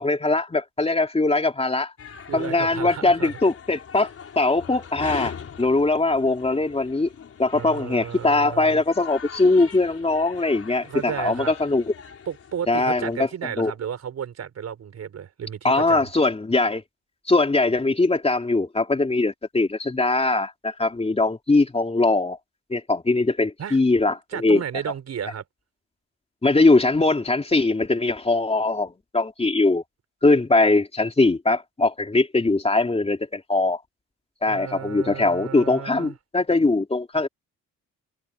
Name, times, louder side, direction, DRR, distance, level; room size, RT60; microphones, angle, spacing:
voice 1, 0.0-1.9 2.3-4.1 4.3-7.1 7.4-11.8 12.7-13.3 13.6-13.7 15.6-16.8 17.3-22.4 22.7-24.6 26.4-29.8 30.2-33.8 34.4-37.3, left 2 dB, 20° left, 3.4 m, -21 dB
sound 1, 2.0-13.2, left 7 dB, 50° left, 4.9 m, -41 dB
voice 2, 2.3-3.4 7.5-8.8 10.8-11.5 12.3-16.1 23.6-23.8 24.3-25.4 34.5-36.2, right 8 dB, 60° right, 5.2 m, -33 dB
cardioid pair, 90°, 30 cm